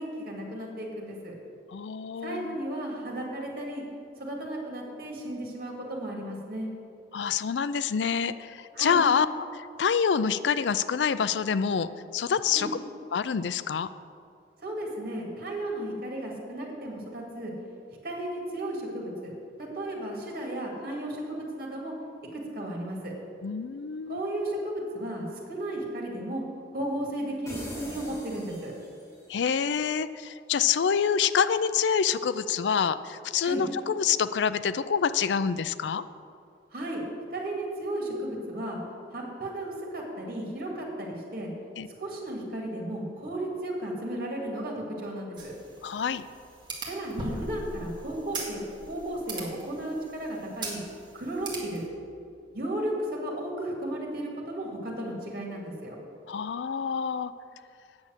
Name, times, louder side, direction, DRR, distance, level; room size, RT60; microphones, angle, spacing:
voice 1, 0.0-1.3 2.2-3.8 4.2-6.7 8.7-9.0 12.5-12.7 14.6-17.5 18.0-19.3 19.7-21.9 22.3-23.1 24.1-26.4 26.7-28.7 33.4-33.6 36.7-37.0 37.3-38.8 39.1-41.5 42.0-45.5 46.8-48.6 48.9-50.8 51.1-51.8 52.5-55.9, right 1 dB, 55° right, -1 dB, 2.4 m, -34 dB
voice 2, 1.7-2.6 7.1-9.3 9.5-12.7 13.1-13.9 23.4-24.3 29.3-36.0 41.8-41.9 45.8-46.2 56.3-57.3, left 7 dB, 85° left, 14 dB, 0.4 m, -27 dB
sound 1, 27.5-29.3, equal, 15° left, 2.4 m, -42 dB
sound 2, 45.4-51.9, right 2 dB, 25° right, 1.9 m, -40 dB
8.7 x 7.2 x 8.0 m, 2.5 s
head